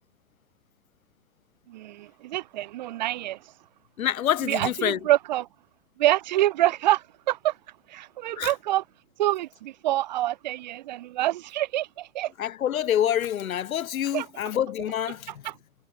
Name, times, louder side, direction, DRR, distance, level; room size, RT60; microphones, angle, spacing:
voice 1, 1.7-3.4 4.5-5.5 6.0-7.5 7.9-8.8 9.2-12.3 14.1-14.3 15.4-15.5, right 15 dB, 35° right, 0.6 m, -26 dB
voice 2, 4.0-5.0 8.4-8.5 12.4-15.4, left 10 dB, 80° left, 0.6 m, -27 dB
figure-of-eight pair, 115°, 41 cm